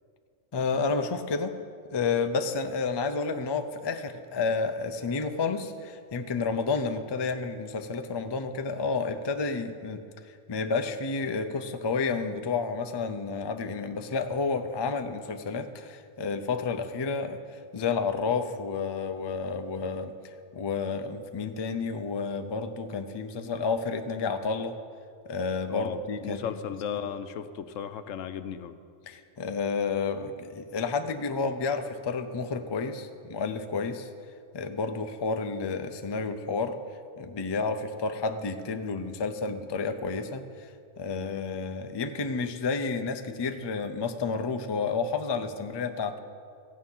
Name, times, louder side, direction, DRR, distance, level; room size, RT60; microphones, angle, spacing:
voice 1, 0.5-1.5 1.9-24.8 25.3-26.4 26.9-27.0 29.1-34.1 34.5-36.7 37.2-40.7 41.0-46.2, left 4 dB, 40° left, 7 dB, 0.4 m, -30 dB
voice 2, 25.7-28.7 41.2-41.3, left 8 dB, 80° left, 11 dB, 1.0 m, -35 dB
15.0 x 9.1 x 5.6 m, 2.3 s
omnidirectional pair, 1.3 m